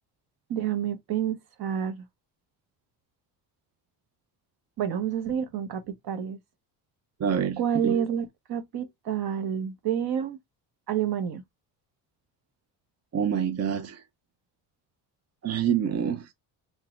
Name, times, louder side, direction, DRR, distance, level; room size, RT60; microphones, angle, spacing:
voice 1, 0.5-2.0 4.8-6.4 7.6-10.4 10.9-11.4, right 9 dB, 55° right, 1.2 m, -29 dB
voice 2, 7.2-8.0 13.1-14.0 15.4-16.3, right 8 dB, 35° right, 0.6 m, -27 dB
3.8 x 3.0 x 2.4 m
cardioid pair, 90°, 44 cm